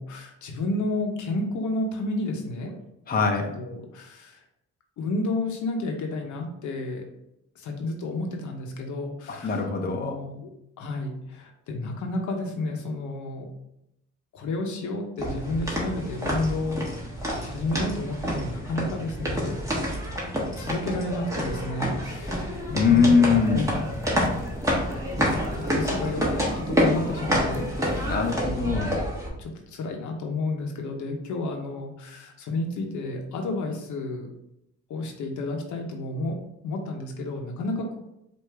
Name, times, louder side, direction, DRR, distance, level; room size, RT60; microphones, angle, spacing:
voice 1, 0.0-2.7 3.5-4.4 5.0-7.0 7.6-10.5 10.8-13.5 14.3-16.9 17.4-19.6 20.6-23.1 23.5-23.8 25.1-28.3 28.7-28.9 29.4-34.3 34.9-36.4 36.6-38.0, left 2 dB, 75° left, 3 dB, 0.8 m, -31 dB
voice 2, 3.1-3.5 9.3-10.2 22.7-23.7 28.0-29.0, left 5 dB, 30° left, 2 dB, 0.7 m, -22 dB
sound 1, 15.2-29.3, equal, 10° right, 1.3 m, -28 dB
sound 2, 22.5-28.1, left 2 dB, 10° left, 0.3 m, -39 dB
4.8 x 2.6 x 3.3 m, 0.82 s
cardioid pair, 90°, 30 cm